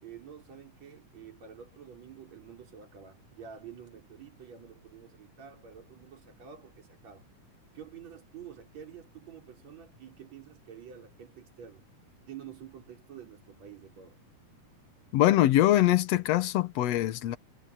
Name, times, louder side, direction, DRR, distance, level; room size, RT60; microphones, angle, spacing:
voice 1, 0.0-7.3 7.7-11.9 12.2-14.2, right 8 dB, 60° right, 5.8 m, -49 dB
voice 2, 15.1-17.4, left 14 dB, 65° left, 1.9 m, -23 dB
omnidirectional pair, 3.5 m